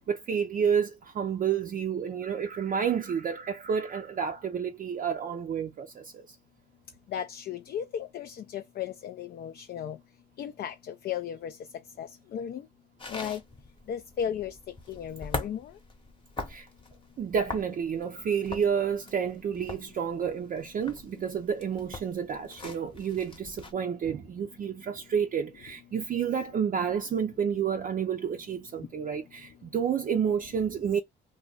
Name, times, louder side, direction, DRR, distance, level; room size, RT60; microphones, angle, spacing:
voice 1, 0.0-6.4 16.5-16.7 17.2-31.0, right 7 dB, 45° right, 0.4 m, -30 dB
voice 2, 7.1-10.0 10.4-11.6 12.0-12.6 13.1-13.4 13.9-14.6 14.9-15.7, left 9 dB, 55° left, 0.4 m, -35 dB
sound 1, 13.0-23.7, left 2 dB, 25° left, 0.9 m, -42 dB
2.3 x 2.1 x 3.8 m
cardioid pair, 90°, 20 cm